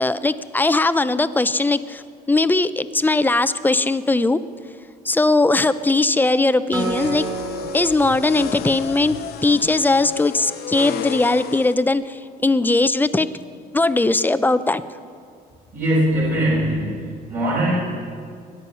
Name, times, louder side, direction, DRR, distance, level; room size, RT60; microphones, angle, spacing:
voice 1, 0.0-4.4 5.0-7.2 7.7-9.2 9.4-13.3 13.7-14.8, left 2 dB, 10° left, 13 dB, 0.5 m, -19 dB
sound 1, 6.7-11.7, left 9 dB, 70° left, 0.8 m, -32 dB
Acoustic guitar, 6.7-10.2, right 3 dB, 25° right, 2.3 m, -32 dB
voice 2, 15.7-17.7, right 1 dB, 55° right, -6 dB, 5.0 m, -21 dB
21.0 x 9.7 x 5.6 m, 2.2 s
cardioid pair, 110°, 17 cm